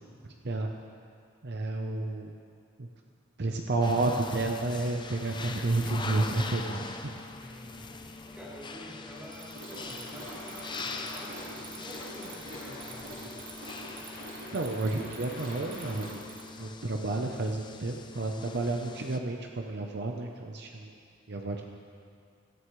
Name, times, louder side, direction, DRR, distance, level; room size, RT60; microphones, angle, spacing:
voice 1, 1.4-2.3 2.8-2.9 3.4-7.2 14.5-16.3 16.6-20.9 21.3-21.6, right 2 dB, 60° right, 2 dB, 0.7 m, -31 dB
sound 1, 3.8-19.2, left 3 dB, 25° left, 0.5 m, -42 dB
voice 2, 7.4-13.3, equal, 5° right, -8 dB, 3.3 m, -47 dB
Mechanisms, 9.2-16.6, right 2 dB, 90° right, 1.7 m, -46 dB
sound 2, 9.7-16.1, left 1 dB, 50° left, 3.1 m, -48 dB
16.5 x 13.0 x 3.2 m, 2.3 s
head